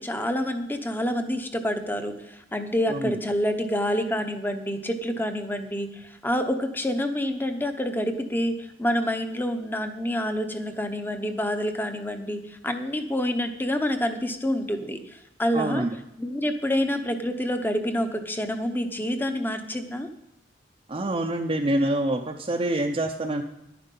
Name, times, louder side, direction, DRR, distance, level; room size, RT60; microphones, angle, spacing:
voice 1, 0.0-15.8 16.2-20.1, equal, 10° left, 7 dB, 0.9 m, -27 dB
voice 2, 15.5-15.9 20.9-23.4, right 1 dB, 30° right, 1 dB, 0.6 m, -26 dB
11.0 x 9.6 x 5.4 m, 0.88 s
head